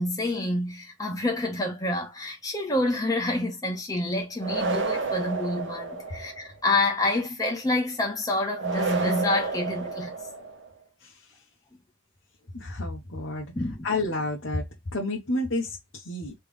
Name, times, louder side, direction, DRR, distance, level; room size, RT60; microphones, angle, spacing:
voice 1, 0.0-10.2 13.5-14.0, left 2 dB, 20° left, 1.3 m, -28 dB
sound 1, 4.4-6.5 8.6-10.7, right 4 dB, 60° right, 1.0 m, -30 dB
voice 2, 12.5-13.5 13.8-14.6 14.9-16.3, left 2 dB, 70° left, 1.1 m, -30 dB
3.5 x 3.4 x 3.4 m
head